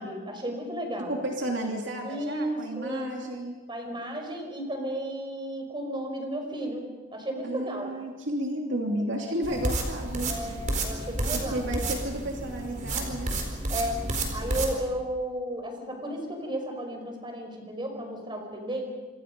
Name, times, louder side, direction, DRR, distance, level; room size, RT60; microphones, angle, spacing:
voice 1, 0.0-1.2 2.0-3.1 3.7-6.8 7.1-7.9 10.3-11.6 13.7-14.0 14.3-18.8, right 1 dB, 25° right, 3 dB, 5.3 m, -33 dB
voice 2, 1.1-3.6 7.4-10.3 11.3-13.3, right 1 dB, 65° right, 1 dB, 2.8 m, -32 dB
sound 1, 9.4-14.7, right 2 dB, 40° right, 4.5 m, -31 dB
27.5 x 26.5 x 5.4 m, 1.3 s
head